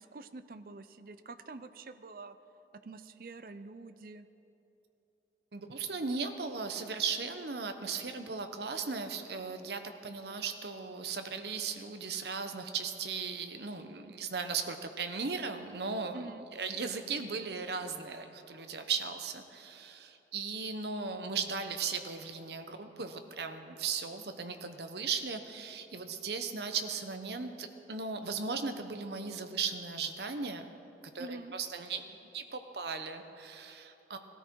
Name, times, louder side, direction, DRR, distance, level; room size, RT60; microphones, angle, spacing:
voice 1, 0.0-2.4 2.7-4.3 16.1-16.5 31.2-31.5, right 3 dB, 55° right, 11 dB, 0.5 m, -46 dB
voice 2, 5.5-30.6 31.1-32.0 32.3-34.2, right 5 dB, 70° right, 7 dB, 1.0 m, -37 dB
18.0 x 13.0 x 4.6 m, 2.9 s
head